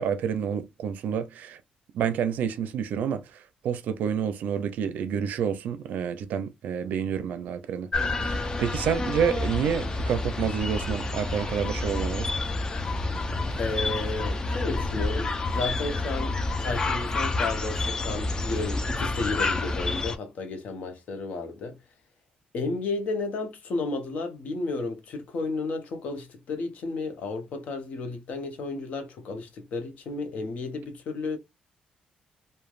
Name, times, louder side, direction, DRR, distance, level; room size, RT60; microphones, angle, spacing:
voice 1, 0.0-1.6 1.9-7.9 8.2-12.3, right 8 dB, 80° right, 0.4 m, -29 dB
sound 1, 7.9-20.2, left 2 dB, 25° left, 0.4 m, -29 dB
voice 2, 13.6-21.8 22.5-31.4, left 3 dB, 65° left, 0.8 m, -33 dB
3.2 x 2.2 x 2.4 m
cardioid pair, 145°, 3 cm